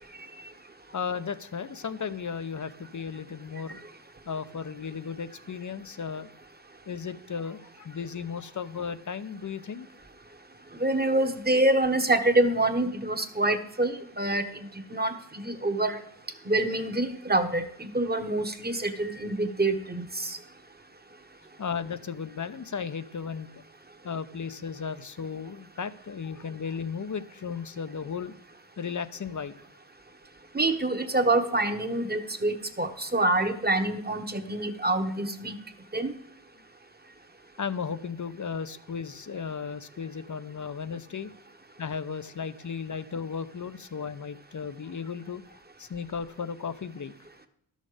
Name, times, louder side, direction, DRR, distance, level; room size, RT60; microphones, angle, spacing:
voice 1, 0.9-3.8 4.3-6.3 6.9-9.9 21.6-23.5 24.0-28.3 28.8-29.6 37.6-41.3 41.8-45.4 45.8-47.1, left 6 dB, 45° left, 13 dB, 0.7 m, -35 dB
voice 2, 10.8-16.0 16.5-20.4 30.5-35.5 35.9-36.1, right 2 dB, 20° right, 7 dB, 1.2 m, -26 dB
12.0 x 6.5 x 5.0 m, 0.72 s
cardioid pair, 60°, 43 cm